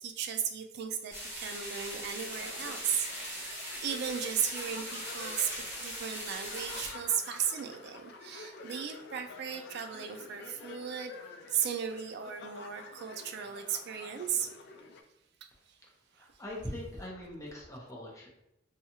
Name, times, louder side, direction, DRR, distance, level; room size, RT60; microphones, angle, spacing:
voice 1, 0.0-3.5 3.8-5.5 5.8-11.1 11.5-14.6 15.4-15.5 16.2-16.3, right 8 dB, 60° right, 6 dB, 0.3 m, -35 dB
sound 1, 1.1-6.9, equal, 15° right, 0.9 m, -40 dB
sound 2, 2.3-15.0, left 4 dB, 60° left, 0.3 m, -49 dB
voice 2, 15.8-18.3, left 1 dB, 15° left, -3 dB, 0.7 m, -42 dB
2.7 x 2.3 x 2.8 m, 0.84 s
head